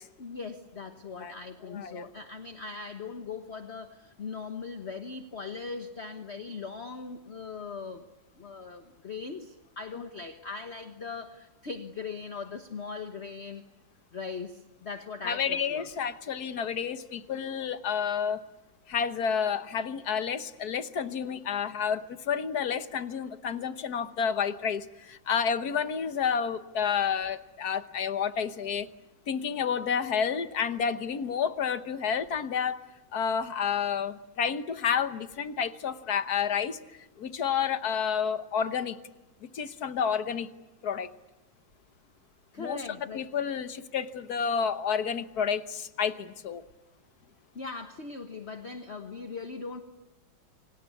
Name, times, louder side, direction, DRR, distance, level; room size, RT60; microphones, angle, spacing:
voice 1, 0.2-8.0 8.4-13.6 14.1-15.9 42.5-43.2 47.5-49.8, left 4 dB, 40° left, 7 dB, 1.4 m, -40 dB
voice 2, 1.6-2.0 15.3-18.4 18.9-28.9 29.3-32.8 33.1-36.8 37.2-39.0 39.5-40.5 40.8-41.1 42.6-42.8 43.1-46.6, left 7 dB, 55° left, 11 dB, 1.5 m, -30 dB
27.5 x 25.0 x 8.4 m, 1.0 s
omnidirectional pair, 2.1 m